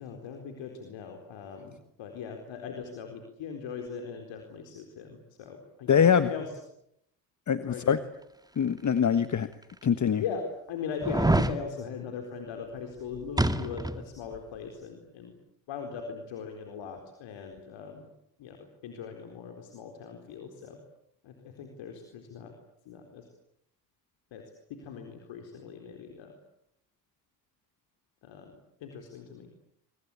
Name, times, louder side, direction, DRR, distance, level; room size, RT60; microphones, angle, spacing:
voice 1, 0.0-6.5 7.7-8.0 10.2-15.3 15.7-18.1 18.4-18.6 18.8-20.8 21.2-22.5 22.9-23.2 24.3-24.4 24.7-26.4 28.2-28.5 28.8-29.5, left 6 dB, 65° left, 4 dB, 4.3 m, -40 dB
voice 2, 5.9-6.3 7.5-8.0 8.6-9.5 9.8-10.2, left 7 dB, 35° left, 12 dB, 1.4 m, -23 dB
sound 1, 9.0-9.1 9.8-9.9 11.0-11.6 13.4-14.0 14.4-14.5, right 1 dB, 10° right, 2.1 m, -25 dB
25.0 x 24.5 x 8.6 m, 0.75 s
hypercardioid pair, 55°, 48 cm